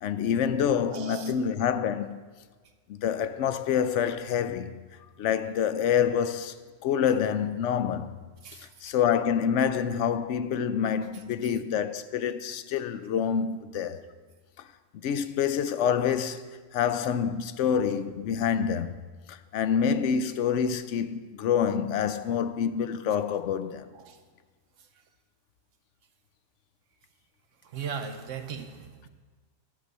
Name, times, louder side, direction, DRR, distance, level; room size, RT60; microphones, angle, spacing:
voice 1, 0.0-2.2 2.9-4.8 5.2-6.6 6.8-8.1 8.8-14.0 15.0-16.4 16.7-19.0 19.3-23.9, left 8 dB, 75° left, 0.9 m, -27 dB
voice 2, 0.9-1.3 8.4-8.7 23.9-24.2 27.7-29.1, right 6 dB, 85° right, 1.2 m, -37 dB
10.5 x 6.7 x 6.2 m
omnidirectional pair, 1.2 m